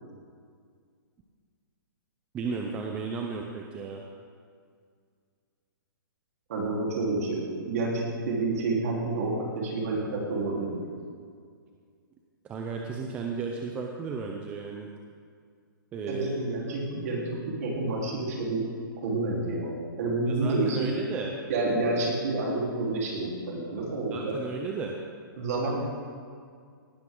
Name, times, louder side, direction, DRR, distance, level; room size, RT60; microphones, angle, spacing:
voice 1, 2.3-4.0 12.4-14.9 15.9-16.3 20.3-21.3 24.1-25.0 25.6-25.7, right 5 dB, 10° right, 1 dB, 0.6 m, -34 dB
voice 2, 6.5-10.9 16.1-18.6 19.0-20.9 21.5-24.4 25.4-25.8, right 2 dB, 45° right, -3 dB, 3.7 m, -29 dB
18.0 x 12.5 x 3.8 m, 2.1 s
hypercardioid pair, 165°, 12 cm